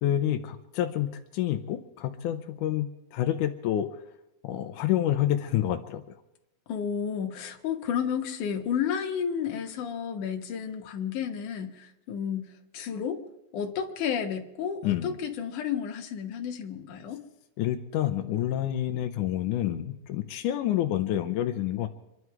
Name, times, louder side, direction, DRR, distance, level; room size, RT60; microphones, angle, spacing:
voice 1, 0.0-3.9 4.4-6.2 14.8-15.1 17.6-21.9, left 12 dB, 80° left, 7 dB, 1.9 m, -28 dB
voice 2, 6.7-13.2 13.5-17.2, left 7 dB, 65° left, 3 dB, 2.6 m, -32 dB
26.0 x 11.0 x 4.8 m, 0.93 s
omnidirectional pair, 4.4 m